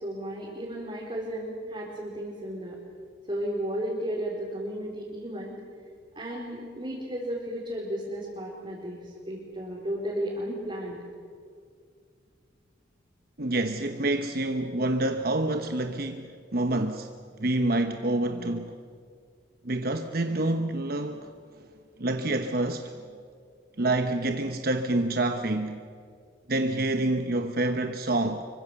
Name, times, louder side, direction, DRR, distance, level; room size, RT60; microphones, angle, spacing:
voice 1, 0.0-2.8 3.3-5.6 6.2-11.0, equal, 30° right, 4.1 m, -34 dB
voice 2, 13.4-17.1 17.4-18.8 19.6-21.3 22.0-23.0 23.8-25.8 26.5-28.4, right 2 dB, 55° right, 1.0 m, -27 dB
25.5 x 24.0 x 7.1 m
head